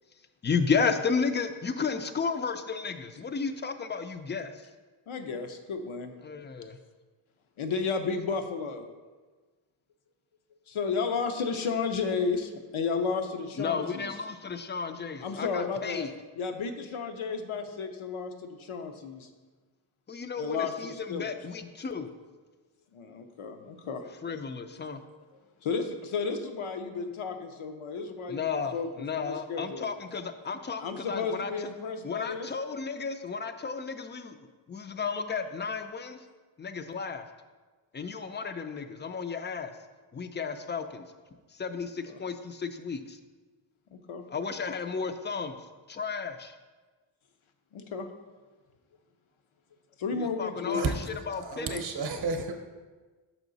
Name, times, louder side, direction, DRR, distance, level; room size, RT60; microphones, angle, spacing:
voice 1, 0.4-4.7 6.2-6.8 13.6-16.1 20.1-22.1 24.2-25.0 28.3-31.5 32.0-34.4 34.7-36.2 36.6-37.2 37.9-39.7 40.1-41.1 41.5-43.2 44.3-45.6 45.9-46.6 50.1-51.8, left 5 dB, 25° left, 9 dB, 0.3 m, -33 dB
voice 2, 5.1-6.1 7.6-8.9 10.7-14.1 15.2-16.1 16.4-19.3 20.4-21.4 22.9-24.0 24.9-25.0 25.6-28.4 28.7-28.9 29.2-29.9 30.8-32.5 42.1-42.2 43.9-44.2 47.7-48.1 50.0-50.9, left 5 dB, 80° left, 7 dB, 0.8 m, -33 dB
voice 3, 51.4-52.6, right 4 dB, 50° right, 4 dB, 0.7 m, -31 dB
6.1 x 5.5 x 3.9 m, 1.3 s
wide cardioid pair, 115°, 48 cm